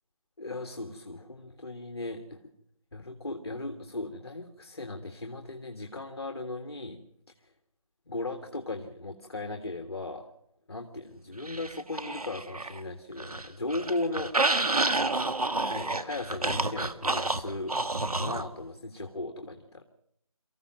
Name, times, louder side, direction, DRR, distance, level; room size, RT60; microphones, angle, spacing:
voice 1, 0.4-2.4 2.9-7.0 7.4-7.5 8.1-10.3 10.7-14.3 15.0-15.3 15.7-17.8 18.1-19.8, left 2 dB, 45° left, 6 dB, 1.8 m, -37 dB
sound 1, 11.4-12.8 13.1-18.5, right 2 dB, 85° right, 1.9 m, -29 dB
24.5 x 15.0 x 7.6 m, 0.75 s
figure-of-eight pair, 180°, 19 cm